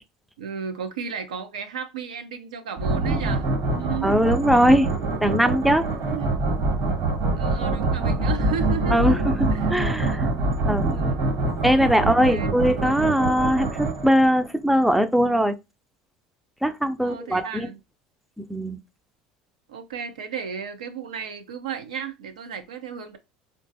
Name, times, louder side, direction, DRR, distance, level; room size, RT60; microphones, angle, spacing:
voice 1, 0.4-4.2 6.1-6.3 7.3-9.7 10.1-10.2 10.8-11.3 11.9-12.5 17.0-17.8 19.7-23.2, right 6 dB, 85° right, 0.5 m, -34 dB
sound 1, 2.8-14.5, right 2 dB, 60° right, 1.3 m, -25 dB
voice 2, 4.0-4.9 5.2-5.9 8.9-10.3 10.7-10.9 11.6-15.6 16.6-17.7 18.4-18.8, equal, ahead, 0.4 m, -20 dB
3.8 x 2.3 x 2.5 m
hypercardioid pair, 75°, 4 cm